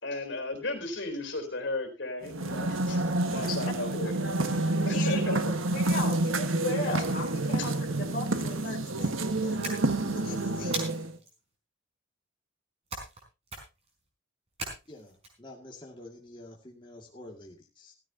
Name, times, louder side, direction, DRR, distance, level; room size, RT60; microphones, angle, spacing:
voice 1, 0.0-3.0 3.3-4.1 4.9-5.5 7.6-7.7, left 2 dB, 65° left, 6 dB, 3.7 m, -35 dB
sound 1, 2.2-11.2, right 2 dB, 85° right, 1.5 m, -28 dB
voice 2, 3.4-3.7 4.8-5.4 5.7-9.8 10.1-10.9, left 2 dB, 40° left, -3 dB, 2.3 m, -37 dB
sound 2, 9.6-10.2 10.7-11.3 12.9-13.2 13.5-13.9 14.6-15.3, right 2 dB, 30° right, 4.6 m, -38 dB
voice 3, 14.9-17.9, left 1 dB, 25° left, -1 dB, 2.2 m, -48 dB
16.0 x 14.5 x 2.8 m, 0.28 s
head